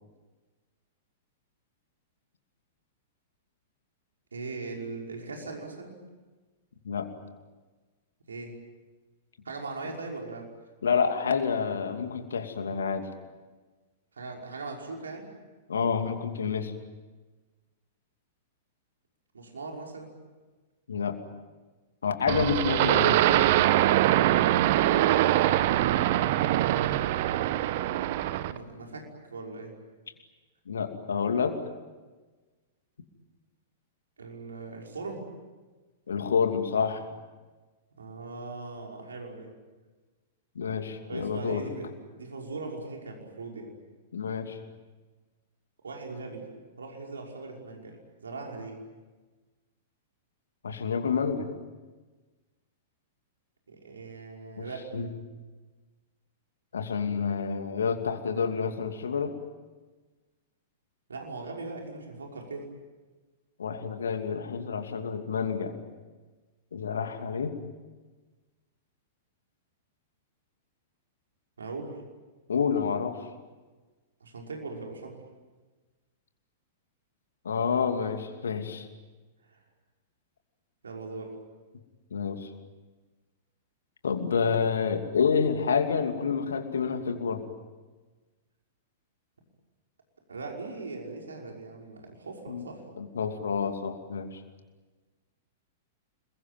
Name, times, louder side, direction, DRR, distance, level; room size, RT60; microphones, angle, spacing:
voice 1, 4.3-6.0 8.3-8.5 9.4-10.5 14.2-15.3 19.3-20.1 28.4-29.7 34.2-35.3 38.0-39.5 41.0-43.7 45.8-46.5 46.8-48.8 53.7-54.9 61.1-62.7 71.6-72.0 74.2-75.2 79.5-79.6 80.8-81.4 90.3-92.8, right 3 dB, 75° right, 1 dB, 5.7 m, -39 dB
voice 2, 10.8-13.1 15.7-16.7 20.9-21.2 22.0-23.4 30.7-31.6 36.1-37.1 40.5-41.6 44.1-44.6 50.6-51.5 54.6-54.7 54.9-55.1 56.7-59.3 63.6-65.8 66.7-67.5 72.5-73.2 77.4-78.9 82.1-82.5 84.0-87.4 92.5-92.6 93.0-94.4, left 6 dB, 70° left, 6 dB, 2.7 m, -28 dB
sound 1, 22.3-28.6, right 14 dB, 50° right, 1.0 m, -23 dB
27.5 x 22.0 x 9.2 m, 1.3 s
figure-of-eight pair, 100°, 0 cm